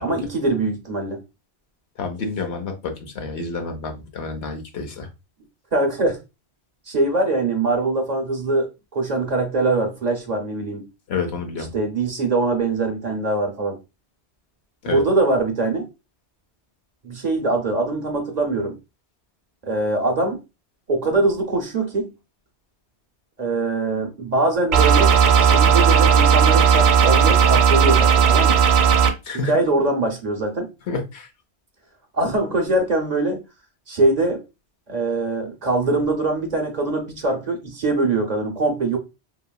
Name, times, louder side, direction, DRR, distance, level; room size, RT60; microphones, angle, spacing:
voice 1, 0.0-1.2 5.7-6.2 6.9-10.9 11.7-13.8 14.9-15.9 17.0-18.8 19.6-20.4 20.9-22.1 23.4-28.6 29.4-30.7 32.1-33.4 33.9-34.4 34.9-39.0, right 2 dB, 45° right, 0.6 m, -22 dB
voice 2, 2.0-5.1 11.1-11.7 14.8-15.0 29.2-29.5 30.9-31.3, left 4 dB, 70° left, 1.0 m, -29 dB
sound 1, 24.7-29.1, right 7 dB, 70° right, 0.9 m, -15 dB
2.9 x 2.7 x 2.2 m
omnidirectional pair, 1.1 m